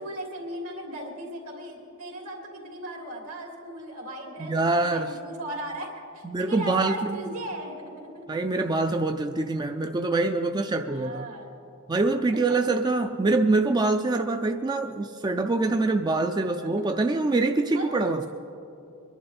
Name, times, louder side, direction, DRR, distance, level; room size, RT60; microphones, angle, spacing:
voice 1, 0.0-8.4 10.9-11.5 12.1-12.4 16.6-16.9 17.7-18.3, right 1 dB, 70° right, 0 dB, 3.1 m, -37 dB
voice 2, 4.4-5.1 6.2-7.2 8.3-11.3 11.9-18.2, right 3 dB, 20° right, 6 dB, 0.4 m, -25 dB
24.0 x 11.0 x 4.2 m, 2.7 s
head